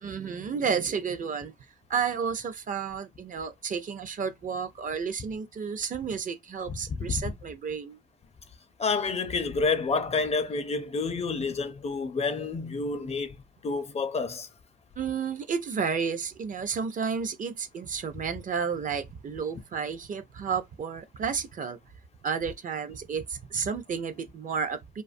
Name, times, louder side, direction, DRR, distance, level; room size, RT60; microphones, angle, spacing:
voice 1, 0.0-1.5 1.9-8.0 15.0-21.8 22.2-25.0, right 6 dB, 40° right, 0.5 m, -31 dB
voice 2, 6.7-7.3 8.8-13.4 13.6-14.5, left 4 dB, 30° left, 0.4 m, -29 dB
2.5 x 2.3 x 2.5 m
cardioid pair, 90°, 20 cm